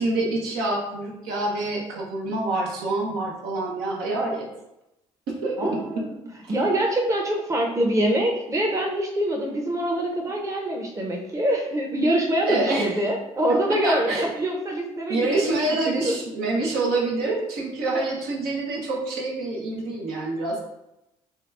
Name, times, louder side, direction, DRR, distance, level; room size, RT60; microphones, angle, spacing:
voice 1, 0.0-4.5 5.3-6.0 12.5-12.9 13.7-14.3 15.1-20.6, right 2 dB, 75° right, -2 dB, 0.8 m, -26 dB
voice 2, 5.6-6.2 6.5-16.2, right 1 dB, 20° right, 0 dB, 0.7 m, -25 dB
2.8 x 2.3 x 3.3 m, 0.89 s
hypercardioid pair, 55°, 16 cm